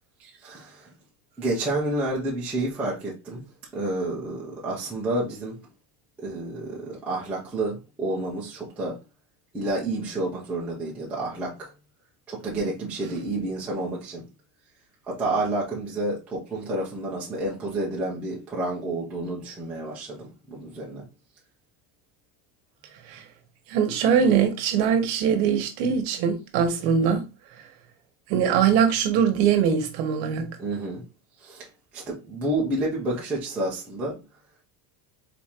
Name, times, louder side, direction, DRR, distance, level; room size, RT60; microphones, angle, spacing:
voice 1, 0.2-0.9 1.4-3.4 3.7-5.6 6.2-9.0 9.5-11.7 12.3-14.3 15.1-21.0 30.6-31.0 31.4-31.7 31.9-34.2, right 2 dB, 5° right, 0.3 m, -29 dB
voice 2, 23.7-27.2 28.3-30.5, right 7 dB, 50° right, 1.0 m, -22 dB
4.2 x 3.5 x 2.9 m
cardioid pair, 175°, 46 cm